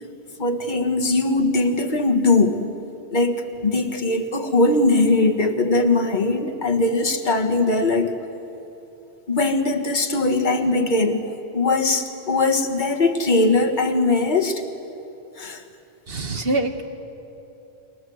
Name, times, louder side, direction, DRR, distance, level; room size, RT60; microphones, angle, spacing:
voice 1, 0.4-2.7 3.1-3.4 3.6-8.1 9.3-11.2 11.5-14.6 15.4-15.6, left 2 dB, 45° left, 4 dB, 1.7 m, -20 dB
voice 2, 16.1-16.8, right 2 dB, 60° right, 6 dB, 1.8 m, -24 dB
29.5 x 22.0 x 7.8 m, 2.9 s
omnidirectional pair, 1.1 m